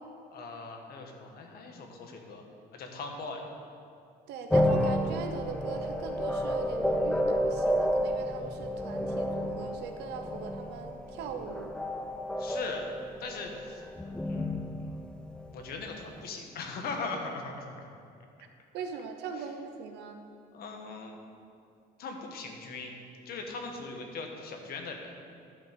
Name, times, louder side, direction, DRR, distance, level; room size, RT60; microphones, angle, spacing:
voice 1, 0.3-2.4 2.7-3.5 12.4-12.9 13.2-13.8 14.2-15.0 15.5-17.9 19.4-19.5 20.5-21.2 22.0-22.9 23.2-25.1, left 3 dB, 65° left, 3 dB, 1.4 m, -40 dB
voice 2, 4.3-11.7 18.7-20.2, right 5 dB, 85° right, 5 dB, 0.9 m, -40 dB
sound 1, 4.5-15.9, equal, 5° left, 0.5 m, -31 dB
11.0 x 6.0 x 5.3 m, 2.4 s
cardioid pair, 110°, 17 cm